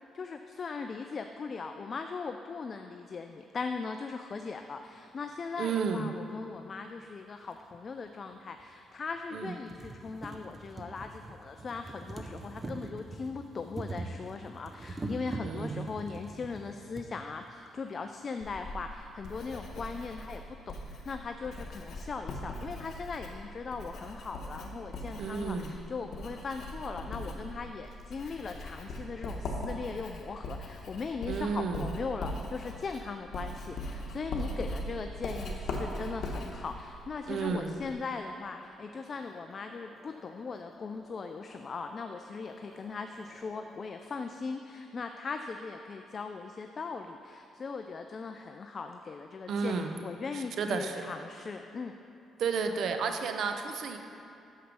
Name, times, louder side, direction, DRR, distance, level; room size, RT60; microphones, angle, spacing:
voice 1, 0.1-20.8 21.1-52.0, left 4 dB, 40° left, 6 dB, 0.3 m, -39 dB
voice 2, 5.6-6.1 9.3-9.5 15.4-15.9 25.2-25.7 31.3-31.9 37.3-37.7 49.5-50.0 50.3-51.0 52.4-54.0, right 5 dB, 70° right, 6 dB, 0.6 m, -32 dB
sound 1, 7.5-7.6 8.6-8.7 9.1-9.2 9.5-17.1 18.0-18.1 18.3-18.4, right 2 dB, 25° right, 0.6 m, -42 dB
Writing, 18.4-37.9, left 1 dB, 60° left, 1.0 m, -40 dB
sound 2, 38.3-44.3, equal, ahead, 1.2 m, -57 dB
6.4 x 5.0 x 5.9 m, 2.7 s
cardioid pair, 90°, 0 cm